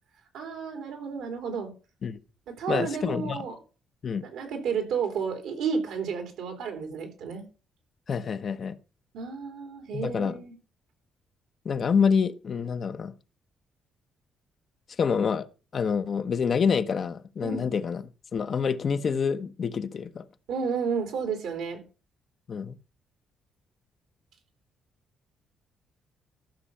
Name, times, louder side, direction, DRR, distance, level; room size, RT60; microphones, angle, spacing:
voice 1, 0.3-1.7 2.5-3.5 4.2-7.4 9.1-10.5 17.4-17.7 20.5-21.8, right 6 dB, 85° right, 3.3 m, -31 dB
voice 2, 2.7-3.4 4.0-4.2 8.1-8.8 9.9-10.4 11.6-13.1 15.0-15.5 15.7-18.0 18.3-20.2 22.5-22.8, left 6 dB, 50° left, 0.9 m, -27 dB
13.0 x 6.2 x 5.6 m
cardioid pair, 90°, 0 cm